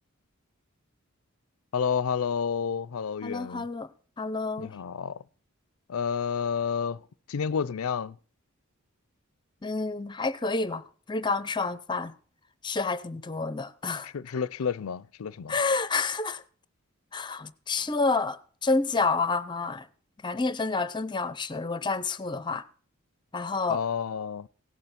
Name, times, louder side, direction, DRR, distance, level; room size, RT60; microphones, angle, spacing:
voice 1, 1.7-3.7 4.6-5.2 5.9-7.0 7.3-8.2 14.0-15.6 23.7-24.5, left 6 dB, 80° left, 0.5 m, -30 dB
voice 2, 3.2-3.9 4.2-4.8 9.6-12.1 12.6-14.1 15.5-16.4 17.1-19.9 20.2-22.6 23.3-23.8, left 3 dB, 20° left, 0.6 m, -29 dB
17.0 x 6.8 x 5.8 m
head